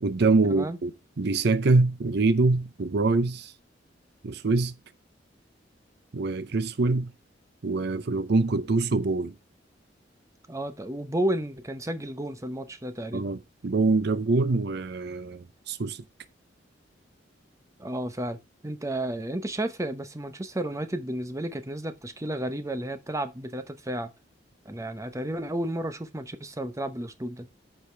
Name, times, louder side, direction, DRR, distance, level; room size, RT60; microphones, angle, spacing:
voice 1, 0.0-3.5 4.2-4.7 6.1-7.1 7.6-9.3 13.1-16.0, right 3 dB, 60° right, 0.6 m, -24 dB
voice 2, 10.5-13.3 17.8-24.1 24.6-27.5, right 1 dB, 15° right, 0.9 m, -32 dB
13.5 x 5.0 x 3.3 m
head